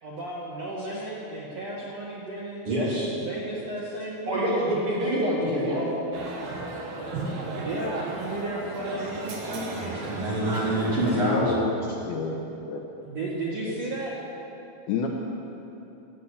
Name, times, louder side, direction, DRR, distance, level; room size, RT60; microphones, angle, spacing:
voice 1, 0.0-2.7 3.1-4.4 7.6-10.1 13.0-14.1, right 2 dB, 90° right, -4 dB, 1.4 m, -34 dB
voice 2, 2.6-3.1 4.3-5.9 9.6-11.6, right 1 dB, 35° right, -6 dB, 3.2 m, -26 dB
sound 1, 6.1-11.3, right 2 dB, 60° right, 2.1 m, -35 dB
voice 3, 11.1-11.7 12.0-12.8 13.7-13.8 14.9-15.1, left 5 dB, 80° left, 0 dB, 2.3 m, -29 dB
18.0 x 8.3 x 7.1 m, 3.0 s
omnidirectional pair, 5.2 m